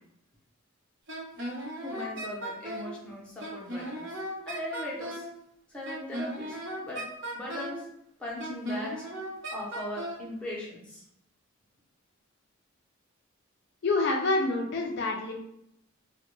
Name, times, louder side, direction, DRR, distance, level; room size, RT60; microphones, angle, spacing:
Wind instrument woodwind instrument, 1.1-2.9 3.4-5.3 5.8-7.8 8.4-10.2, right 1 dB, 60° right, 0.8 m, -37 dB
voice 1, 1.6-4.2 4.5-5.3 5.7-7.1 7.3-7.9 8.2-9.1 9.5-11.0, left 1 dB, 5° left, -6 dB, 0.6 m, -39 dB
voice 2, 13.8-15.3, left 3 dB, 55° left, 0 dB, 0.4 m, -27 dB
2.1 x 2.1 x 3.0 m, 0.76 s
head